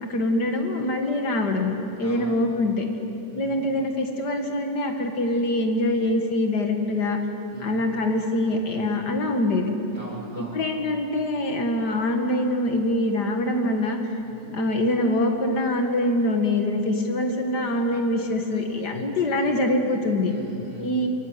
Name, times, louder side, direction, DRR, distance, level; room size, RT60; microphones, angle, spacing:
voice 1, 0.0-2.9 3.4-7.2 7.6-9.7 10.4-14.0 14.5-20.3 20.8-21.1, left 1 dB, 80° left, 3 dB, 2.5 m, -24 dB
voice 2, 2.0-2.3 3.3-3.6 7.5-7.8 9.9-10.6 14.2-14.6 20.2-21.1, right 2 dB, 25° right, -6 dB, 5.3 m, -39 dB
25.0 x 15.5 x 9.7 m, 3.0 s
omnidirectional pair, 1.8 m